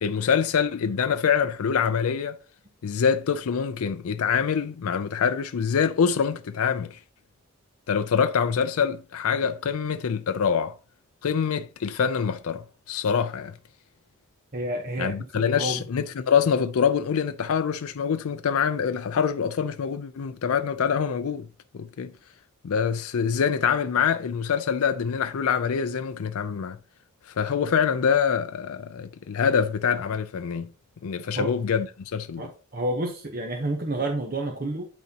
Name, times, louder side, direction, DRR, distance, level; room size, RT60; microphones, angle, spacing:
voice 1, 0.0-2.4 2.8-7.0 7.9-10.8 11.2-13.6 15.0-21.5 21.7-22.1 22.6-26.8 27.3-30.7 31.0-32.4, left 7 dB, 80° left, 0.4 m, -25 dB
voice 2, 14.5-15.8 31.3-31.5 32.4-34.9, right 1 dB, 40° right, 0.9 m, -30 dB
12.0 x 4.1 x 2.8 m
head